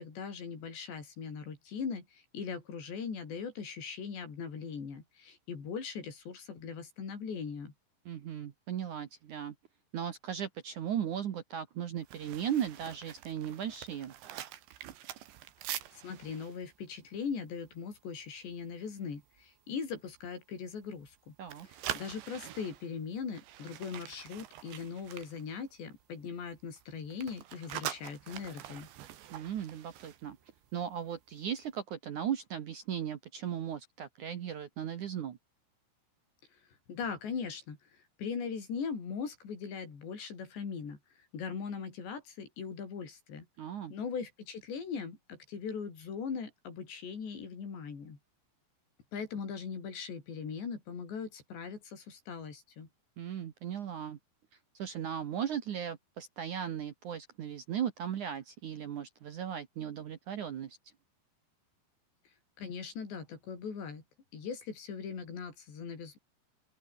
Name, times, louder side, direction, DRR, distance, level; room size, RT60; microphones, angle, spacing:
voice 1, 0.0-7.7 15.9-21.3 21.9-28.9 36.9-41.0 41.3-43.4 43.9-48.2 49.1-52.9 62.6-64.0 64.3-66.2, left 6 dB, 80° left, 7.7 m, -40 dB
voice 2, 8.1-9.6 9.9-14.1 21.4-21.7 29.3-30.4 30.7-35.4 43.6-43.9 53.2-54.2 54.7-60.8, right 9 dB, 60° right, 2.4 m, -37 dB
sound 1, 12.0-18.2 18.5-18.7 19.1-19.4 19.9-21.2 21.4-26.2 26.4-31.0 31.2-31.5, right 12 dB, 90° right, 4.2 m, -45 dB
open air
omnidirectional pair, 5.0 m